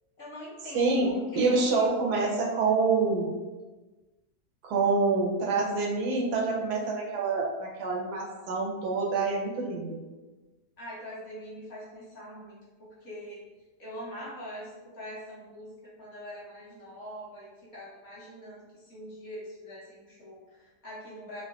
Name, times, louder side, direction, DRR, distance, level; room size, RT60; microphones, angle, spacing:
voice 1, 0.2-1.9 10.8-13.4 13.8-21.4, equal, 50° left, -7 dB, 0.9 m, -43 dB
voice 2, 0.7-3.3 4.6-10.0, right 3 dB, 80° right, -1 dB, 1.2 m, -27 dB
3.8 x 2.5 x 2.2 m, 1.2 s
omnidirectional pair, 1.7 m